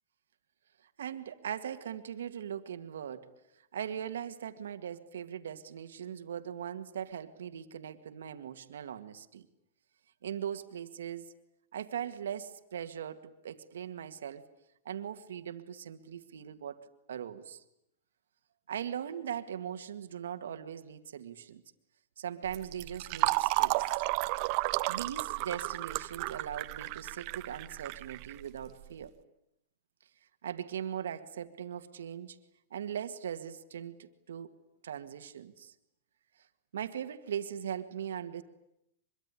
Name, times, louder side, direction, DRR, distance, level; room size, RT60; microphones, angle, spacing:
voice 1, 0.8-3.3 3.6-9.5 10.2-11.3 11.7-14.5 14.9-17.6 18.7-21.6 22.2-24.0 24.9-29.1 30.4-32.4 32.7-34.6 34.8-35.7 36.7-38.4, right 9 dB, 85° right, 9 dB, 2.0 m, -40 dB
Fill (with liquid), 22.5-28.9, right 21 dB, 50° right, 1.0 m, -32 dB
25.0 x 23.0 x 9.9 m, 0.81 s
hypercardioid pair, 125°, 0 cm